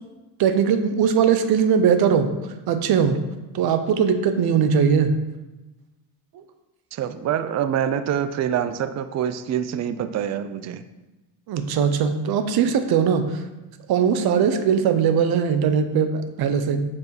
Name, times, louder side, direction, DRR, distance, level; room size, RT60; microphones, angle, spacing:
voice 1, 0.4-2.3 2.7-3.2 3.5-5.1 6.3-6.4 11.5-13.2 13.9-16.9, right 7 dB, 60° right, 9 dB, 0.9 m, -20 dB
voice 2, 6.9-10.8, right 9 dB, 40° right, 12 dB, 0.5 m, -25 dB
7.3 x 4.7 x 4.8 m, 1.1 s
supercardioid pair, 95°, 42 cm